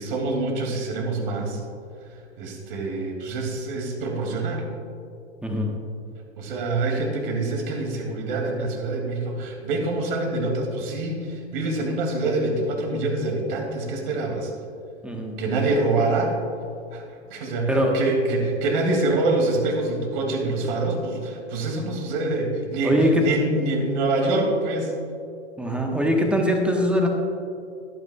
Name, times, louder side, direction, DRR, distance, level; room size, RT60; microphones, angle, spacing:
voice 1, 0.0-1.6 2.4-4.6 6.4-14.5 15.4-16.3 16.9-17.0 17.3-24.9, right 2 dB, 50° right, 1 dB, 2.8 m, -25 dB
voice 2, 15.0-15.3 17.7-18.0 22.8-23.2 25.6-27.1, equal, 5° right, 1 dB, 1.4 m, -22 dB
21.5 x 9.0 x 2.5 m, 2.5 s
figure-of-eight pair, 100°, 34 cm